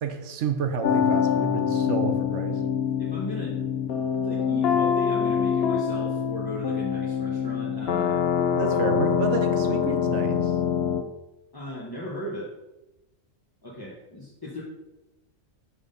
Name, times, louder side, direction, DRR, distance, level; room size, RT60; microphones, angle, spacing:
voice 1, 0.0-2.6 8.5-10.6, right 6 dB, 65° right, 7 dB, 0.8 m, -30 dB
sound 1, 0.8-11.0, left 8 dB, 65° left, 0.7 m, -25 dB
voice 2, 3.0-3.6 3.9-8.2 11.5-12.5 13.6-14.6, equal, 20° left, -5 dB, 0.8 m, -37 dB
5.9 x 3.5 x 5.2 m, 0.99 s
omnidirectional pair, 1.4 m